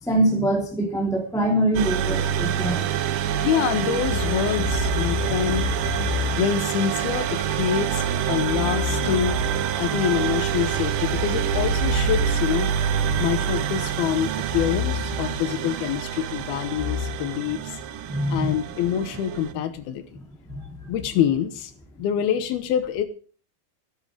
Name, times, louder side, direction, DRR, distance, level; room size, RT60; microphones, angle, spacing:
voice 1, 0.0-2.8 18.1-18.6 20.5-20.7, right 1 dB, ahead, 0 dB, 2.3 m, -24 dB
sound 1, 1.7-19.5, right 9 dB, 75° right, 2.3 m, -26 dB
voice 2, 3.4-5.7 6.4-9.4 9.8-12.7 13.2-17.8 18.3-20.0 20.9-21.7 22.0-23.0, left 9 dB, 85° left, 9 dB, 3.0 m, -25 dB
15.5 x 10.5 x 5.0 m, 0.43 s
omnidirectional pair, 4.3 m